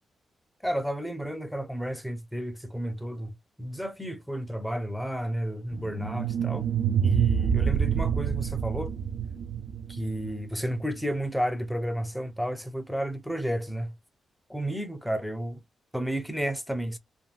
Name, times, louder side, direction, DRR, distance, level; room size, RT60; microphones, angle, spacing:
voice 1, 0.6-6.7 7.0-8.9 9.9-13.9 14.5-15.6 15.9-17.0, equal, 5° left, 0.6 m, -32 dB
sound 1, 5.7-10.8, right 8 dB, 75° right, 0.3 m, -27 dB
3.4 x 2.2 x 2.4 m
cardioid pair, 115°, 0 cm